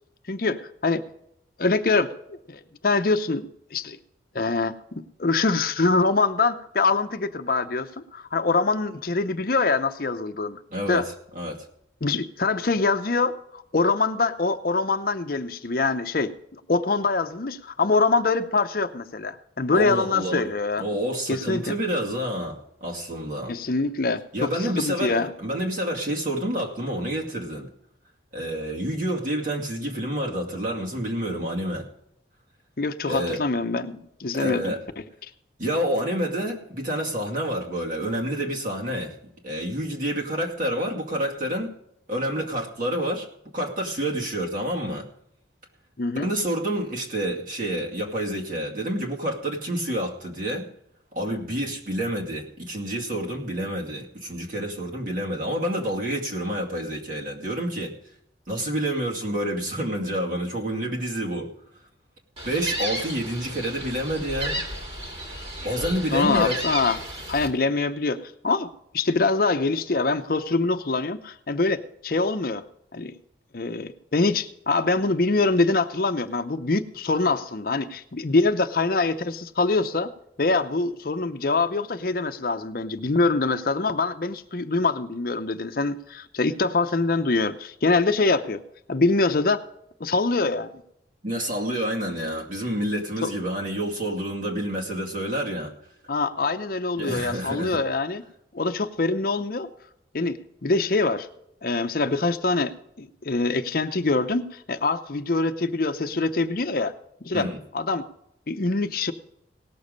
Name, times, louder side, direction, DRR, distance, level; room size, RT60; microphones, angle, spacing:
voice 1, 0.3-1.0 1.6-2.1 2.5-3.5 3.7-4.0 4.3-10.6 10.9-11.1 12.0-20.8 21.3-21.8 23.5-25.3 32.8-34.7 35.2-35.3 46.0-46.3 66.1-67.0 67.3-72.6 72.9-73.1 73.5-80.1 80.4-88.6 88.9-89.6 90.0-90.7 93.2-93.3 96.1-98.2 98.5-99.7 100.1-101.3 101.6-106.9 107.2-107.5 107.7-108.1 108.5-109.1, left 3 dB, 55° left, 9 dB, 0.7 m, -24 dB
voice 2, 10.7-11.6 19.7-20.5 20.8-23.5 24.3-27.7 28.3-31.9 33.1-33.4 34.3-34.8 35.6-39.1 39.4-41.7 42.1-43.3 43.5-45.1 46.2-50.7 51.1-57.9 58.5-61.5 62.4-64.6 65.6-66.6 91.2-95.7 96.9-97.8 107.3-107.6, equal, 45° right, 0 dB, 2.4 m, -28 dB
Gull seagull, 62.4-67.5, right 1 dB, 30° right, 2.4 m, -33 dB
18.0 x 7.0 x 5.2 m, 0.75 s
head